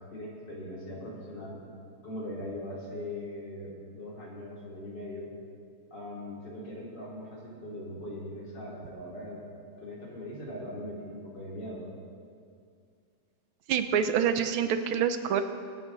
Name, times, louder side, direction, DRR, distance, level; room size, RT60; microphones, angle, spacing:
voice 1, 0.1-1.6 2.0-5.3 5.9-9.4 9.8-11.9, left 1 dB, 55° left, -5 dB, 3.6 m, -40 dB
voice 2, 13.7-15.4, right 8 dB, 80° right, 9 dB, 1.5 m, -26 dB
24.5 x 8.4 x 4.0 m, 2.3 s
omnidirectional pair, 2.3 m